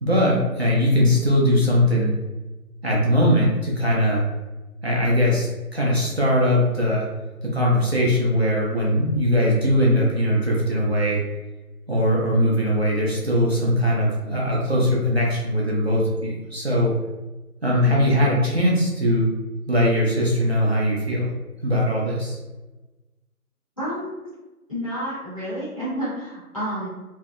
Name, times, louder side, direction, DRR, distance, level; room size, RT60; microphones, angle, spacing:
voice 1, 0.0-2.1 2.8-4.2 4.8-7.1 7.4-11.2 11.9-16.9 17.6-19.3 19.7-21.3 21.6-22.4, equal, 45° right, -4 dB, 0.6 m, -20 dB
voice 2, 17.8-18.3 23.8-24.2 24.7-26.9, equal, 25° left, -11 dB, 0.7 m, -30 dB
2.6 x 2.0 x 2.3 m, 1.1 s
figure-of-eight pair, 160°, 45 cm